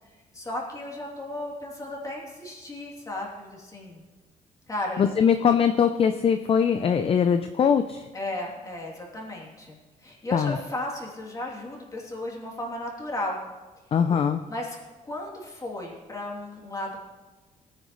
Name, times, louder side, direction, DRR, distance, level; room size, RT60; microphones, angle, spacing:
voice 1, 0.3-4.0 4.7-5.1 8.1-13.4 14.5-14.8 15.0-17.0, left 1 dB, 25° left, -2 dB, 3.0 m, -35 dB
voice 2, 5.0-8.1 10.3-10.6 13.9-14.4, left 7 dB, 45° left, 8 dB, 0.5 m, -22 dB
18.0 x 9.6 x 3.2 m, 1.2 s
cardioid pair, 110°, 14 cm